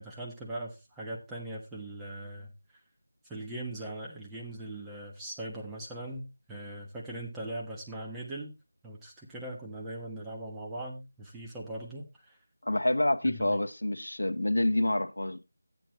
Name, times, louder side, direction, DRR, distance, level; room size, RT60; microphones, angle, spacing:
voice 1, 0.0-2.5 3.3-8.5 8.8-12.4 13.2-13.6, right 1 dB, 5° right, 1.2 m, -40 dB
voice 2, 12.6-15.4, left 1 dB, 75° left, 0.9 m, -27 dB
12.5 x 8.9 x 3.1 m
figure-of-eight pair, 165°, 0 cm